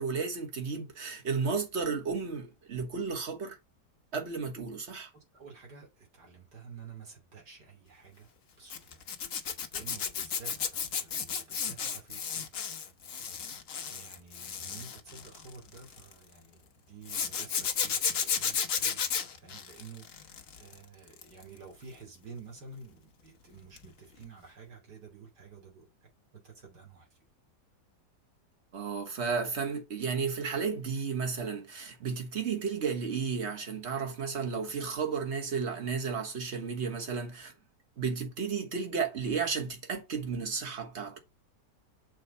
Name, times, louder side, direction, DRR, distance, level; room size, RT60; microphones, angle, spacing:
voice 1, 0.0-3.6 4.1-5.1 28.7-37.5 38.0-41.2, right 5 dB, 40° right, 1.6 m, -33 dB
voice 2, 5.1-8.3 8.6-9.0 9.4-12.5 13.9-27.1, right 5 dB, 70° right, 3.4 m, -51 dB
Zipper (clothing), 8.7-16.1 17.1-20.7 21.1-21.4 23.8-23.9 24.2-24.3, left 7 dB, 55° left, 1.2 m, -33 dB
6.5 x 4.1 x 5.4 m
omnidirectional pair, 1.8 m